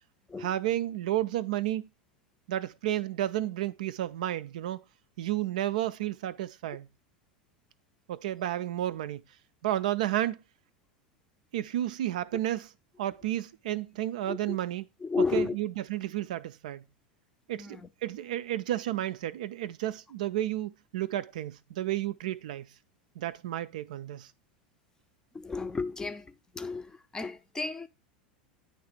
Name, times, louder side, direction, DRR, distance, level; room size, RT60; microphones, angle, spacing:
voice 1, 0.4-1.9 2.5-4.8 5.2-6.9 8.1-9.2 9.6-10.4 11.5-12.7 13.0-14.9 15.3-16.8 17.5-22.7 23.2-24.3, right 13 dB, 60° right, 0.3 m, -32 dB
voice 2, 14.2-14.6 15.0-15.6 17.6-17.9 25.3-27.9, left 4 dB, 15° left, 0.5 m, -33 dB
9.4 x 3.1 x 4.9 m
figure-of-eight pair, 85°, 5 cm